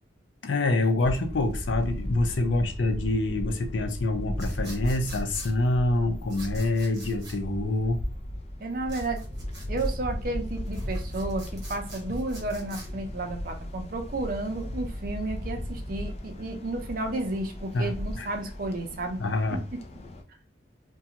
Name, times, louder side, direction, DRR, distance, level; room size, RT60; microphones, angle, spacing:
voice 1, 0.4-8.0 17.7-18.3 19.2-19.6, left 2 dB, 85° left, 0.5 m, -26 dB
sound 1, 1.0-20.2, left 1 dB, 35° left, 0.4 m, -36 dB
sound 2, 4.4-5.5 6.3-7.4 8.9-9.9 10.6-12.9, right 2 dB, 20° right, 0.9 m, -46 dB
voice 2, 8.6-9.2 9.7-19.2, right 2 dB, 50° right, 0.5 m, -32 dB
2.4 x 2.2 x 2.8 m
head